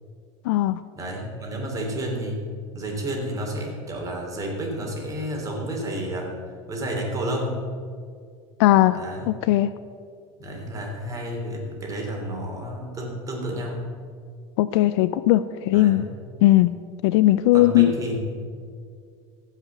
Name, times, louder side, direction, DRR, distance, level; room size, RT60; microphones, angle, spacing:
voice 1, 0.4-0.8 8.6-9.0 9.3-9.7 14.6-16.1 16.4-16.8 17.0-17.9, left 15 dB, 85° left, 14 dB, 0.4 m, -18 dB
voice 2, 1.0-2.4 2.7-6.3 6.7-7.6 8.9-9.3 10.4-13.8 15.7-16.1 17.5-18.2, right 1 dB, 25° right, 0 dB, 2.9 m, -30 dB
15.0 x 5.7 x 7.1 m, 2.2 s
supercardioid pair, 130°, 14 cm